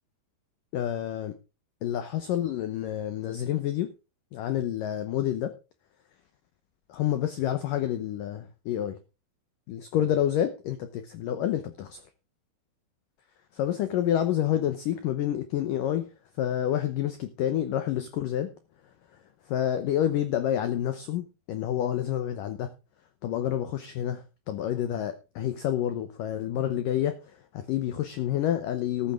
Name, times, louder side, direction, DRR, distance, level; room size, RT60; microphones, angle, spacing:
voice 1, 0.7-1.3 1.8-3.9 4.3-5.5 6.9-9.0 9.7-12.0 13.5-16.0 16.4-18.5 19.5-22.7 23.2-27.2 27.5-29.1, left 11 dB, 70° left, 10 dB, 2.1 m, -28 dB
14.0 x 12.0 x 3.7 m, 0.30 s
omnidirectional pair, 5.0 m